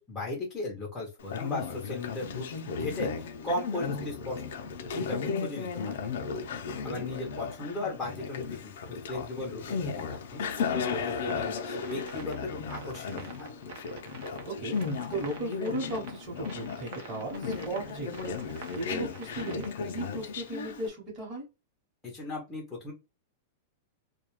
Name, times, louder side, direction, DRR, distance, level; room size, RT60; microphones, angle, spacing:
voice 1, 0.0-2.5 2.8-4.4 4.9-6.1 6.8-13.5 22.0-22.9, left 2 dB, 10° left, -2 dB, 0.6 m, -37 dB
Conversation, 1.2-20.9, left 5 dB, 65° left, 0.5 m, -35 dB
sound 1, 10.3-20.1, right 4 dB, 45° right, 0.7 m, -48 dB
voice 2, 14.5-18.3 18.7-21.4, right 2 dB, 25° right, -2 dB, 1.0 m, -36 dB
2.3 x 2.1 x 3.0 m, 0.27 s
supercardioid pair, 175°, 0 cm